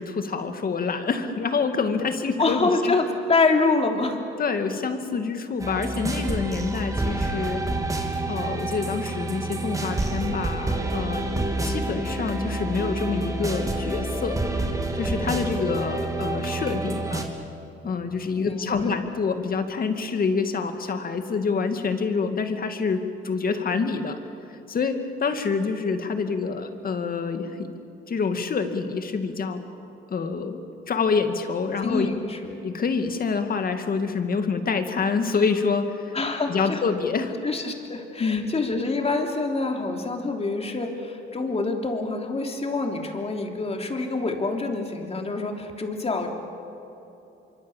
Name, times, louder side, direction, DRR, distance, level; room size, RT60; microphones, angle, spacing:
voice 1, 0.0-2.9 4.4-7.6 8.3-11.3 11.6-14.4 15.0-17.3 17.8-24.2 24.7-27.7 28.1-29.6 30.1-32.1 32.6-36.1 36.5-37.4 38.2-38.5, left 5 dB, 45° left, 7 dB, 2.2 m, -27 dB
voice 2, 2.4-4.2 18.4-19.0 31.8-32.6 36.1-36.8 37.4-46.3, left 3 dB, 30° left, 3 dB, 3.4 m, -26 dB
sound 1, 5.6-17.2, right 2 dB, 15° right, 3.0 m, -28 dB
25.5 x 24.0 x 7.3 m, 3.0 s
cardioid pair, 90°, 20 cm